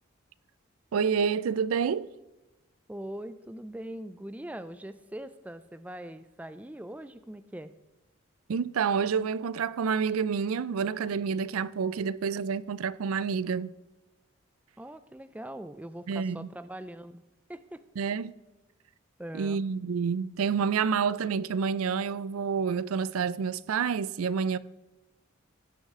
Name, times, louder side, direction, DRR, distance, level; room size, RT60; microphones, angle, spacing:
voice 1, 0.9-2.1 8.5-13.7 16.1-16.5 18.0-18.3 19.3-24.6, right 6 dB, 85° right, 0.4 m, -28 dB
voice 2, 2.9-7.7 14.8-17.2 17.5-17.8 19.2-19.6, right 1 dB, 5° right, 0.3 m, -41 dB
16.5 x 6.3 x 3.7 m
head